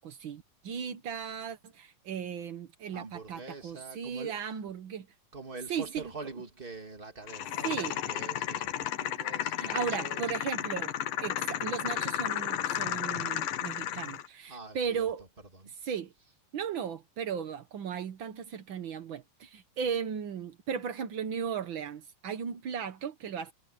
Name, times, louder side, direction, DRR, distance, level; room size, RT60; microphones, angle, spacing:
voice 1, 0.0-5.1 5.7-6.1 7.6-8.0 9.6-10.9 11.2-15.2 15.8-16.1 16.5-23.5, right 7 dB, 85° right, 1.0 m, -36 dB
voice 2, 2.9-4.4 5.3-10.3 14.4-15.1 15.5-15.7, right 3 dB, 15° right, 2.5 m, -45 dB
sound 1, 7.3-14.3, left 12 dB, 85° left, 2.9 m, -33 dB
omnidirectional pair, 3.9 m